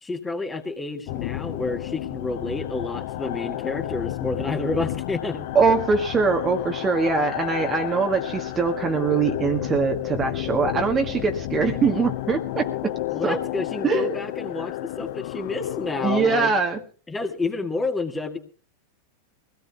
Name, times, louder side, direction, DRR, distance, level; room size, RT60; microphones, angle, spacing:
voice 1, 0.0-5.5 13.1-16.6 17.1-18.4, left 3 dB, 10° left, 4 dB, 1.8 m, -29 dB
sound 1, 1.1-16.5, left 15 dB, 50° left, 0.5 m, -31 dB
voice 2, 5.5-13.0 13.2-13.4 13.8-14.1 16.0-16.8, right 5 dB, 20° right, 4 dB, 1.5 m, -22 dB
23.0 x 16.5 x 2.3 m, 0.40 s
figure-of-eight pair, 90°, 0 cm